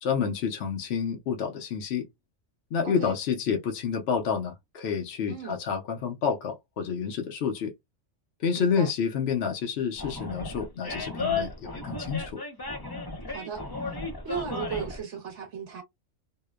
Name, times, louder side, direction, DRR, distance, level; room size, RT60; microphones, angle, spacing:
voice 1, 0.0-2.1 2.7-7.7 8.4-12.4, left 6 dB, 65° left, 0.8 m, -29 dB
voice 2, 2.8-3.1 5.3-5.6 8.5-8.9 13.3-13.6 14.2-15.8, right 7 dB, 70° right, 1.1 m, -36 dB
Animal, 10.0-15.0, left 4 dB, 25° left, 0.5 m, -34 dB
2.8 x 2.0 x 2.2 m
omnidirectional pair, 1.3 m